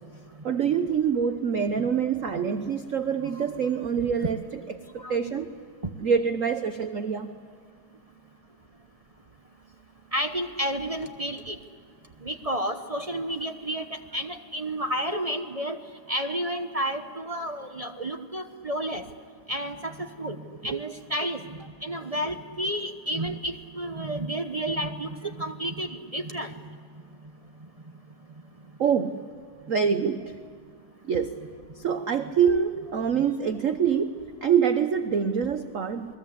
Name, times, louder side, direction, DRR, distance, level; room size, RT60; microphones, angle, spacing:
voice 1, 0.4-4.4 4.9-5.5 6.0-7.3 20.6-20.8 28.8-29.2 29.7-30.3 31.1-31.4 31.8-36.2, right 7 dB, 55° right, 8 dB, 0.9 m, -25 dB
voice 2, 10.1-11.5 12.2-13.8 14.1-15.8 16.1-19.0 19.5-20.4 20.6-21.4 21.8-26.5, equal, 40° right, 5 dB, 0.5 m, -31 dB
28.5 x 21.5 x 8.1 m, 2.1 s
omnidirectional pair, 2.4 m